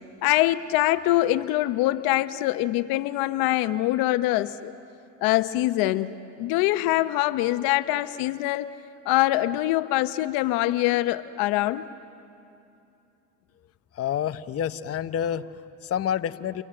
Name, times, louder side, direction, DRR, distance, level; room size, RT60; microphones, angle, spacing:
voice 1, 0.2-4.7 5.2-8.7 9.1-11.9, left 16 dB, 75° left, 12 dB, 0.8 m, -24 dB
voice 2, 13.9-16.6, left 9 dB, 40° left, 11 dB, 0.9 m, -28 dB
29.0 x 25.5 x 7.7 m, 2.7 s
supercardioid pair, 85°, 35 cm